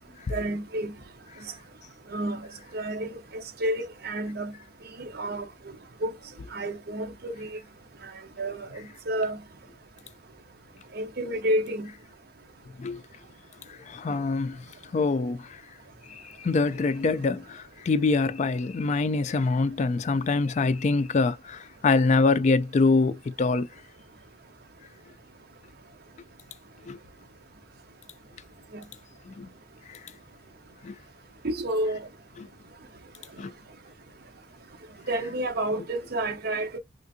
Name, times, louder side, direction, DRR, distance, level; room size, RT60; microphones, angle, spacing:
voice 1, 0.3-0.9 2.1-2.4 2.7-4.5 4.9-5.5 6.0-6.1 6.5-7.6 8.4-9.4 10.9-11.9 31.4-32.1 35.1-36.8, right 1 dB, 55° right, 0.8 m, -30 dB
voice 2, 13.7-14.6 14.9-15.6 16.1-23.7 26.9-27.0 29.3-29.5 29.9-30.0 30.8-31.0 32.4-32.5 33.4-33.5, left 3 dB, 35° left, 0.3 m, -25 dB
3.5 x 2.5 x 2.6 m
head